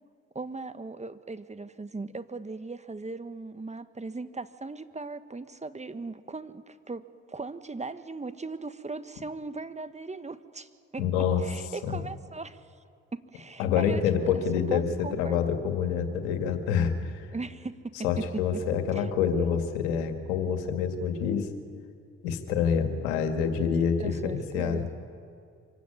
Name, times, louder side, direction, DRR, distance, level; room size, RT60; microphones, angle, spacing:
voice 1, 0.3-12.6 13.1-14.3 14.7-15.5 17.3-18.6 18.9-19.1 24.0-24.8, right 3 dB, 20° right, 11 dB, 1.4 m, -38 dB
voice 2, 11.0-11.4 11.8-12.1 13.6-17.3 18.0-21.5 22.2-24.8, left 7 dB, 80° left, 7 dB, 2.1 m, -27 dB
25.0 x 16.5 x 9.9 m, 2.4 s
hypercardioid pair, 45°, 33 cm